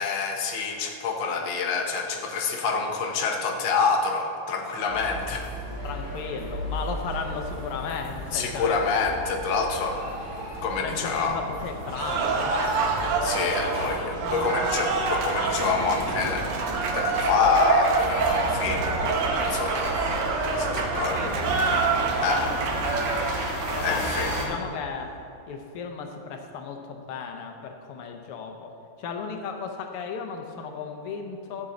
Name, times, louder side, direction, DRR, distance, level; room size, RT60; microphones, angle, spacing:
voice 1, 0.0-5.5 8.3-10.0 10.6-11.4 13.2-20.0 20.6-21.2 22.2-22.5 23.8-24.3, left 4 dB, 65° left, 2 dB, 1.6 m, -27 dB
sound 1, 4.9-24.5, equal, 15° right, 1.4 m, -34 dB
voice 2, 5.8-8.8 10.8-12.9 21.1-22.6 23.0-23.3 23.7-24.1 24.4-25.2 25.5-31.7, left 5 dB, 90° left, 4 dB, 1.7 m, -35 dB
Cheering / Applause, 11.9-24.5, right 4 dB, 85° right, 1.8 m, -27 dB
12.5 x 7.0 x 3.8 m, 2.6 s
omnidirectional pair, 2.4 m